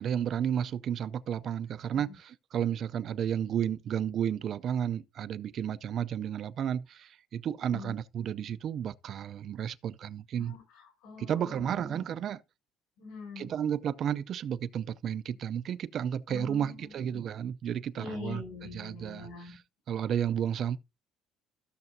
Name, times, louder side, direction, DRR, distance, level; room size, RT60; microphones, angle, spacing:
voice 1, 0.0-10.6 11.2-12.4 13.4-19.6 19.9-20.8, right 9 dB, 40° right, 0.4 m, -32 dB
voice 2, 10.4-12.0 13.0-13.5 16.3-16.9 17.1-17.2 18.0-19.6, left 4 dB, 70° left, 7.0 m, -44 dB
14.5 x 6.7 x 2.6 m
cardioid pair, 175°, 0 cm